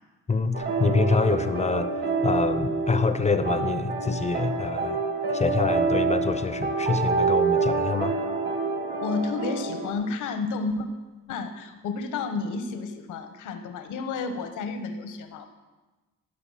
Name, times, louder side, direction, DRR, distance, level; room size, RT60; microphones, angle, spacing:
voice 1, 0.3-1.9 2.2-5.0 5.3-8.1, left 4 dB, 20° left, 11 dB, 0.7 m, -26 dB
sound 1, 0.5-9.9, right 4 dB, 35° right, 1.9 m, -27 dB
voice 2, 9.0-10.9 11.3-15.5, left 4 dB, 85° left, 8 dB, 1.2 m, -31 dB
14.0 x 6.8 x 5.7 m, 1.2 s
cardioid pair, 90°, 30 cm